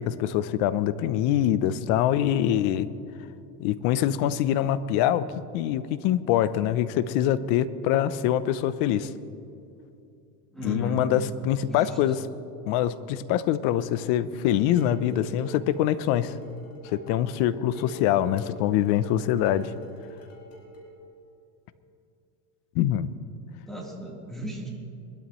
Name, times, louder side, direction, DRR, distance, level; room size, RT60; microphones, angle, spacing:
voice 1, 0.0-2.9 3.6-5.2 5.5-9.1 10.6-12.3 12.7-16.4 16.8-19.7 22.7-23.1, left 11 dB, 60° left, 15 dB, 0.8 m, -24 dB
voice 2, 10.5-11.1 11.7-12.0 23.7-24.7, equal, ahead, -4 dB, 3.3 m, -34 dB
Dishes pots and pans, 14.3-20.9, left 1 dB, 35° left, 3.8 m, -46 dB
23.0 x 12.5 x 3.1 m, 2.6 s
supercardioid pair, 125°, 46 cm